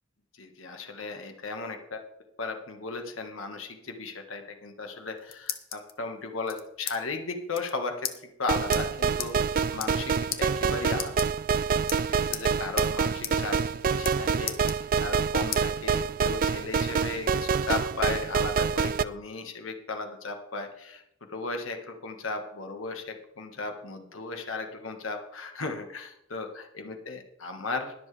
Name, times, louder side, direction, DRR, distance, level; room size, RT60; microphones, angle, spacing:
voice 1, 0.3-2.0 2.4-8.1 8.4-11.1 11.9-13.6 13.9-21.0 21.3-27.9, left 3 dB, 80° left, 4 dB, 1.5 m, -36 dB
sound 1, 4.9-5.9 6.5-7.0 7.2-7.3 7.5-7.7 8.0-8.2 8.7-8.8 9.2-9.3 9.7-10.0 10.3-10.4 10.9-11.6 11.9-12.5 12.8-12.9 13.2-13.3 13.6-14.2 14.5-15.2 15.5-15.6 16.1-17.0, left 10 dB, 50° left, 1.0 m, -35 dB
sound 2, 8.5-19.0, right 6 dB, 45° right, 0.4 m, -27 dB
21.0 x 7.3 x 3.3 m, 0.81 s
head